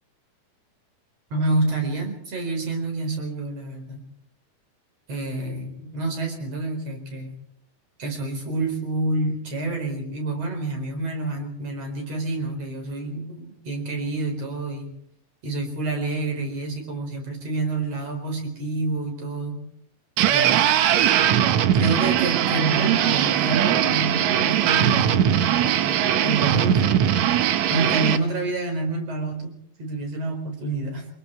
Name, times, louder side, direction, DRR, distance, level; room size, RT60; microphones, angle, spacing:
voice 1, 1.3-4.0 5.1-7.3 8.0-14.9 15.4-19.6 20.3-20.6 21.7-27.0 27.7-29.5 29.8-31.0, right 2 dB, 50° right, 3 dB, 5.5 m, -28 dB
sound 1, 20.2-28.2, right 10 dB, 70° right, 2.0 m, -20 dB
25.5 x 22.5 x 4.7 m, 0.67 s
omnidirectional pair, 3.7 m